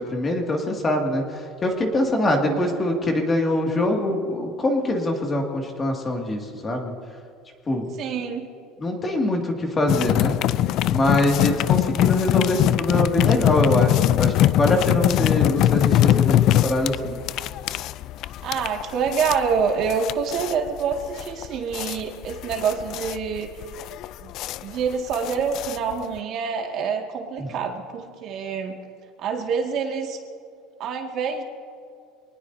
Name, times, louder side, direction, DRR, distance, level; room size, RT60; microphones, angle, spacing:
voice 1, 0.0-6.9 7.7-7.9 8.8-10.3 10.9-17.2 27.4-27.5, left 1 dB, 20° left, 1 dB, 2.1 m, -23 dB
voice 2, 2.1-2.7 7.9-8.5 18.4-23.5 24.2-24.3 24.6-28.8 29.2-30.2 30.8-31.4, right 6 dB, 45° right, 2 dB, 1.9 m, -26 dB
sound 1, 9.9-26.2, left 13 dB, 50° left, 0.3 m, -22 dB
26.0 x 19.5 x 2.7 m, 2.4 s
cardioid pair, 150°, 0 cm